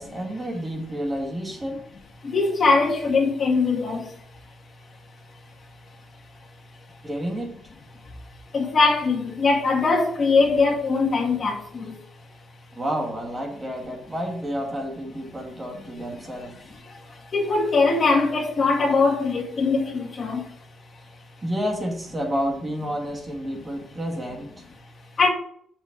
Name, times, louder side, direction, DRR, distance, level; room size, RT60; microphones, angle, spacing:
voice 1, 0.0-1.8 7.0-7.5 12.8-16.5 21.4-24.5, equal, 25° right, 2.4 m, -30 dB
voice 2, 2.2-4.0 8.5-11.9 17.3-20.4 25.2-25.3, left 4 dB, 45° left, 2.3 m, -21 dB
6.9 x 6.1 x 6.2 m
cardioid pair, 90°, 0 cm